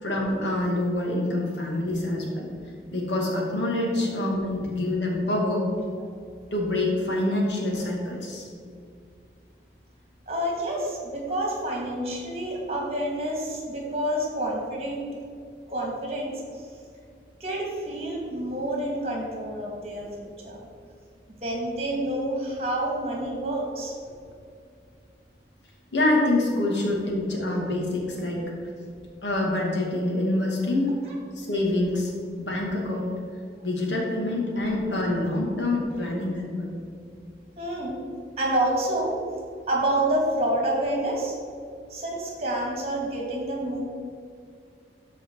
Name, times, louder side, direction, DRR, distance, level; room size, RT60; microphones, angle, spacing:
voice 1, 0.0-2.5 2.9-5.7 6.5-8.5 25.9-28.5 29.2-30.9 31.4-32.1 32.4-33.2 33.6-36.7, left 1 dB, 90° left, -1 dB, 2.3 m, -26 dB
voice 2, 10.3-15.1 15.7-16.6 17.4-20.7 21.4-23.9 31.1-31.2 34.6-34.7 35.9-36.1 37.6-38.0 38.4-39.1 39.7-41.4 41.9-43.8, right 1 dB, 35° right, -2 dB, 2.3 m, -28 dB
13.0 x 4.9 x 4.7 m, 2.4 s
head